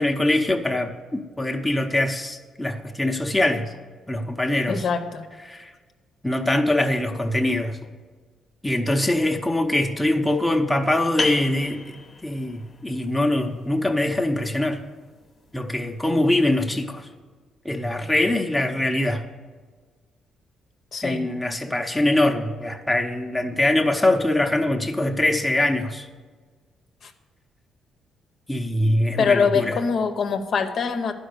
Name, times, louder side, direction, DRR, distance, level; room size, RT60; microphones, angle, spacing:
voice 1, 0.0-3.7 4.1-4.9 5.5-5.7 6.2-7.8 8.6-11.8 12.2-14.8 15.5-17.1 17.6-19.3 21.0-26.1 28.5-29.8, left 1 dB, 5° left, 3 dB, 0.8 m, -23 dB
voice 2, 4.7-5.3 20.9-21.3 27.0-27.1 29.2-31.1, left 6 dB, 60° left, 6 dB, 0.8 m, -23 dB
sound 1, 11.2-16.5, left 4 dB, 30° left, 0.9 m, -36 dB
11.0 x 5.2 x 6.7 m, 1.5 s
cardioid pair, 90°, 0 cm